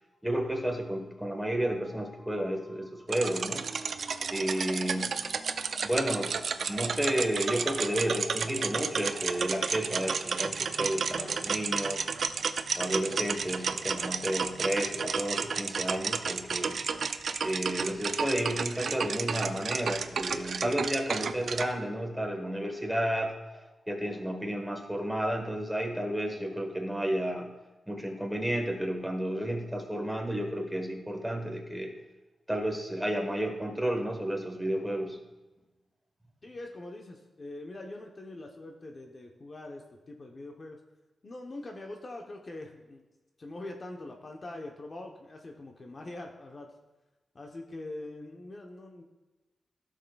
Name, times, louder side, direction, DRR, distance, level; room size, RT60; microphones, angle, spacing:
voice 1, 0.2-12.1 12.8-16.8 17.4-23.6 23.9-27.5 27.9-31.9 32.5-35.2, right 1 dB, 5° right, 2 dB, 1.3 m, -32 dB
sound 1, 3.1-21.7, right 5 dB, 65° right, 0.4 m, -32 dB
voice 2, 36.4-40.8 41.2-43.0 43.4-46.7 47.3-49.0, left 2 dB, 40° left, 2 dB, 0.8 m, -43 dB
14.5 x 6.4 x 2.3 m, 1.1 s
wide cardioid pair, 110°, 0 cm